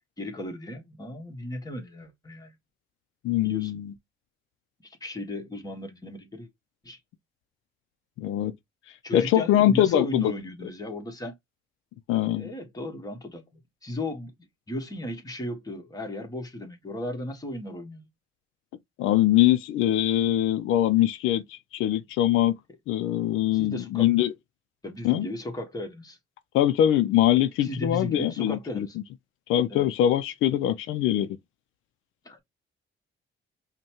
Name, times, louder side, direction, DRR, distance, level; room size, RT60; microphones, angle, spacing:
voice 1, 0.2-2.5 3.4-3.8 4.8-6.5 6.8-7.0 9.0-11.4 12.1-13.5 13.8-14.3 14.7-18.1 23.5-24.1 24.8-26.2 27.6-29.0 29.7-29.9 32.2-32.4, left 1 dB, 20° left, 1.4 m, -36 dB
voice 2, 3.2-3.9 8.2-8.6 9.1-10.3 12.1-12.5 19.0-22.6 22.9-24.3 25.0-25.3 26.5-28.9 29.5-31.3, left 12 dB, 90° left, 0.4 m, -23 dB
5.3 x 2.2 x 2.9 m
cardioid pair, 90°, 20 cm